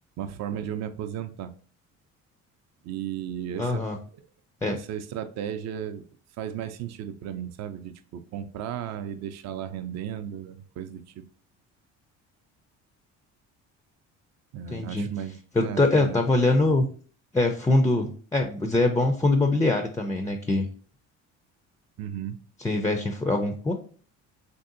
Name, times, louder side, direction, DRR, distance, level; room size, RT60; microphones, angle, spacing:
voice 1, 0.2-1.5 2.8-3.8 4.6-6.0 6.4-11.2 14.5-15.3 15.6-16.2 22.0-22.4, right 9 dB, 50° right, 9 dB, 0.4 m, -35 dB
voice 2, 3.6-4.0 4.6-4.8 14.7-15.1 15.5-16.9 17.3-20.7 22.6-23.7, left 2 dB, 10° left, 5 dB, 0.3 m, -23 dB
3.4 x 2.7 x 2.5 m, 0.43 s
supercardioid pair, 80°, 34 cm